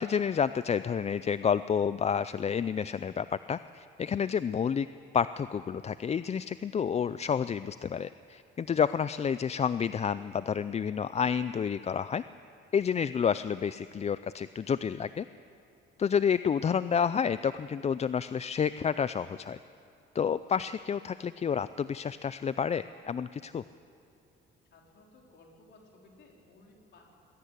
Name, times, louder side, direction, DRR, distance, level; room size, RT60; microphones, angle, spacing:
voice 1, 0.0-4.9 5.1-12.2 12.7-15.3 16.0-19.6 20.1-23.6, left 7 dB, 35° left, 15 dB, 0.4 m, -29 dB
voice 2, 24.7-27.0, left 2 dB, 65° left, 0 dB, 4.3 m, -58 dB
21.0 x 16.5 x 8.4 m, 2.6 s
cardioid pair, 90°, 20 cm